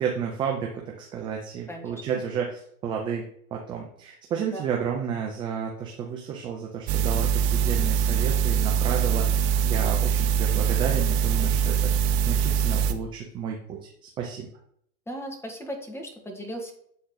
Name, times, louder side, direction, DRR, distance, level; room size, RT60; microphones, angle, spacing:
voice 1, 0.0-3.2 3.5-11.9 12.2-13.9 14.2-14.5, right 7 dB, 10° right, 0 dB, 0.3 m, -31 dB
voice 2, 1.7-2.0 4.5-4.6 15.1-16.7, equal, 5° left, 3 dB, 1.4 m, -37 dB
sound 1, 6.9-12.9, right 7 dB, 45° right, 0.8 m, -23 dB
7.9 x 3.8 x 3.8 m, 0.66 s
hypercardioid pair, 100°, 47 cm